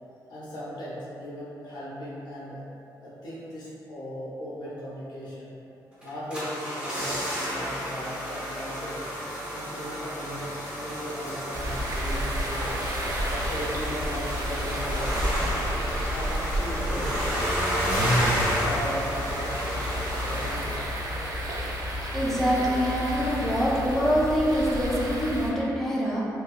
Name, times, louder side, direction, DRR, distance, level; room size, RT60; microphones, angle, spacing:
voice 1, 0.3-2.6 3.0-5.5 6.0-9.0 9.5-12.7 13.3-15.7 16.1-17.2 18.2-20.8, equal, 70° left, -9 dB, 1.0 m, -37 dB
sound 1, 6.0-21.5 21.8-21.9, equal, 15° right, 0.8 m, -31 dB
sound 2, 11.5-25.5, equal, 55° right, 0.4 m, -31 dB
voice 2, 22.1-26.2, equal, 5° left, -7 dB, 0.4 m, -25 dB
3.4 x 2.7 x 2.2 m, 2.7 s
wide cardioid pair, 150°, 7 cm